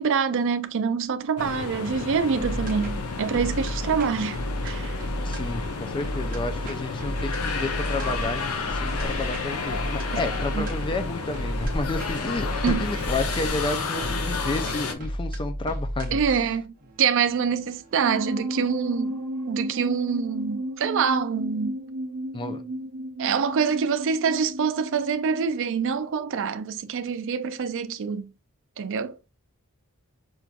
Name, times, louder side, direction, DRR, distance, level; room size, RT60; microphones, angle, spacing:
voice 1, 0.0-4.4 4.6-4.9 10.5-10.7 12.6-12.9 16.1-19.2 19.5-21.8 23.2-28.3 28.8-29.1, right 6 dB, 60° right, 0.4 m, -25 dB
sound 1, 1.4-14.9, left 4 dB, 70° left, 0.7 m, -31 dB
sound 2, 2.4-19.5, equal, 40° right, 0.9 m, -33 dB
voice 2, 5.1-16.4 22.3-22.6, left 3 dB, 20° left, 0.4 m, -31 dB
sound 3, 18.0-25.5, right 1 dB, 90° right, 0.9 m, -33 dB
5.8 x 2.5 x 2.3 m
head